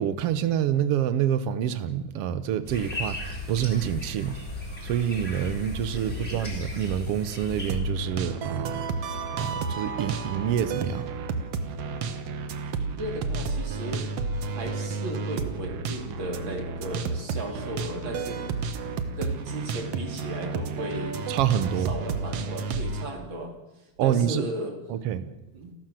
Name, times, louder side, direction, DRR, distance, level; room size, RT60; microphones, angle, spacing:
voice 1, 0.0-4.4 4.8-8.9 9.3-11.1 21.3-21.9 24.0-24.4 24.9-25.3, right 10 dB, 80° right, 1.3 m, -27 dB
sound 1, 2.7-7.7, left 2 dB, 15° left, 6.6 m, -35 dB
voice 2, 5.9-6.4 12.8-14.2 14.5-18.6 19.2-21.2 21.8-23.5 24.0-24.8 25.5-25.7, right 1 dB, 35° right, 3.1 m, -35 dB
sound 2, 7.7-23.1, right 4 dB, 55° right, 1.9 m, -31 dB
29.5 x 12.5 x 7.7 m
omnidirectional pair, 4.1 m